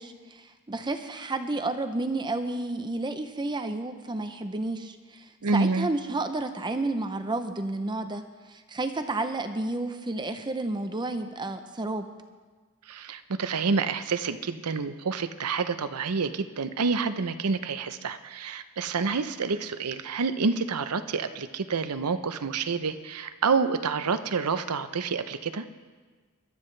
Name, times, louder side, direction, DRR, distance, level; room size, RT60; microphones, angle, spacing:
voice 1, 0.0-12.1, right 2 dB, 20° right, 8 dB, 0.6 m, -31 dB
voice 2, 5.4-5.9 12.9-25.6, right 4 dB, 90° right, 11 dB, 0.7 m, -28 dB
21.5 x 12.5 x 3.3 m, 1.4 s
head